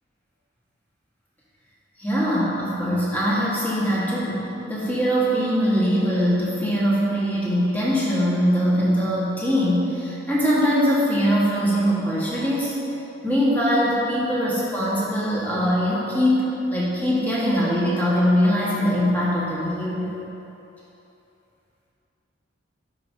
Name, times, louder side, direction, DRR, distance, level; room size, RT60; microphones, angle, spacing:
voice 1, 2.0-12.7 13.2-20.1, equal, 10° left, -8 dB, 1.4 m, -22 dB
10.5 x 4.8 x 2.7 m, 2.9 s
head